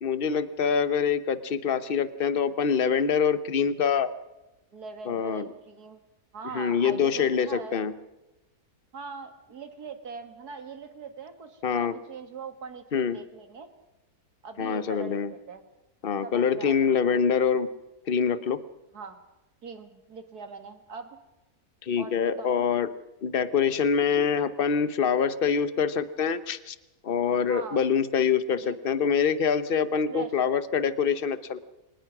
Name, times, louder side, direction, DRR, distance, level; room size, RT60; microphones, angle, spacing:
voice 1, 0.0-4.1 5.1-5.5 6.5-7.9 11.6-11.9 12.9-13.2 14.6-15.3 16.0-17.7 18.1-18.6 21.8-22.9 23.2-26.8 27.0-31.6, left 6 dB, 40° left, 14 dB, 1.1 m, -25 dB
voice 2, 4.7-6.0 6.3-7.8 8.9-13.7 14.4-15.6 16.2-17.2 18.9-19.2 19.6-21.2 22.0-22.6 27.5-27.9 28.5-28.8 30.1-30.3, right 5 dB, 75° right, 8 dB, 2.6 m, -41 dB
24.0 x 20.0 x 6.1 m, 0.99 s
omnidirectional pair, 1.7 m